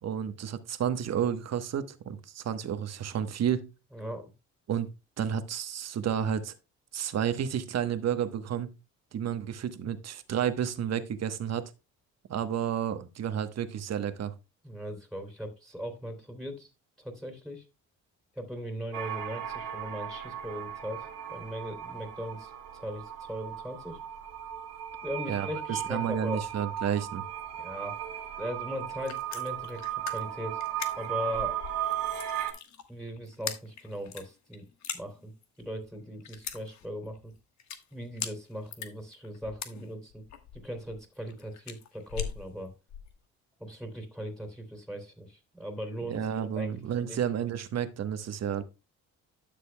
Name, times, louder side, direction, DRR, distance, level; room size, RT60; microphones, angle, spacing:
voice 1, 0.0-3.7 4.7-4.9 5.2-6.5 6.9-8.7 9.1-11.6 12.3-14.3 25.3-27.2 46.1-48.6, right 8 dB, 60° right, 1.1 m, -31 dB
voice 2, 3.9-4.3 14.6-16.7 17.0-17.6 18.3-24.0 25.0-26.4 27.5-28.0 28.4-30.6 31.0-31.6 32.9-34.6 34.9-35.3 35.6-37.3 37.9-40.2 40.5-42.7 43.6-46.2 46.5-46.7 47.1-47.2, equal, ahead, 2.7 m, -39 dB
sound 1, 18.9-32.5, right 11 dB, 85° right, 1.7 m, -36 dB
sound 2, 28.8-43.1, left 8 dB, 65° left, 1.3 m, -41 dB
12.0 x 6.8 x 2.2 m
cardioid pair, 90°, 30 cm